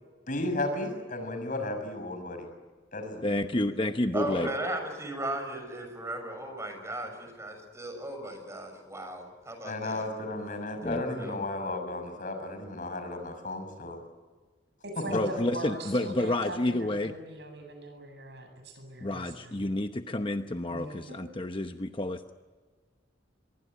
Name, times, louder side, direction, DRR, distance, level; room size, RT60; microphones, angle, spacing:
voice 1, 0.3-2.5 2.9-3.3 9.6-14.0, left 2 dB, 50° left, 6 dB, 6.2 m, -34 dB
voice 2, 3.2-4.5 10.8-11.0 15.1-17.1 19.0-22.3, left 1 dB, 30° left, 7 dB, 0.9 m, -30 dB
voice 3, 4.1-10.0 10.8-11.4, right 1 dB, 15° right, 5 dB, 6.5 m, -36 dB
voice 4, 14.8-19.6 20.7-21.2, right 1 dB, 70° right, 6 dB, 7.9 m, -41 dB
24.5 x 23.0 x 9.8 m, 1.4 s
head